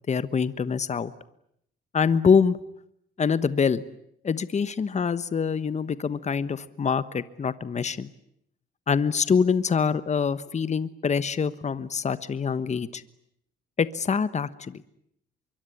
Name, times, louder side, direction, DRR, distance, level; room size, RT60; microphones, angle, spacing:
voice 1, 0.1-1.1 1.9-2.6 3.2-3.8 4.2-8.1 8.9-13.0 13.8-14.8, left 6 dB, 35° left, 15 dB, 1.2 m, -25 dB
25.0 x 23.5 x 9.9 m, 0.73 s
cardioid pair, 90°, 20 cm